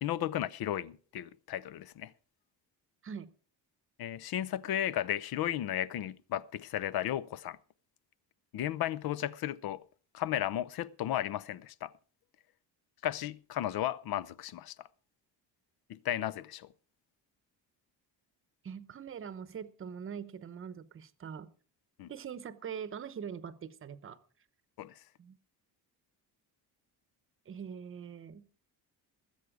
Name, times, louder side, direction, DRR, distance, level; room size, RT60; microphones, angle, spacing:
voice 1, 0.0-2.1 4.0-7.6 8.5-9.8 10.1-11.9 13.0-14.9 15.9-16.7 22.0-22.1 24.8-25.0, left 12 dB, 65° left, 0.7 m, -34 dB
voice 2, 18.6-21.5 22.1-24.2 25.2-25.4 27.5-28.5, right 7 dB, 30° right, 0.9 m, -43 dB
20.5 x 8.1 x 4.9 m
cardioid pair, 165°, 40 cm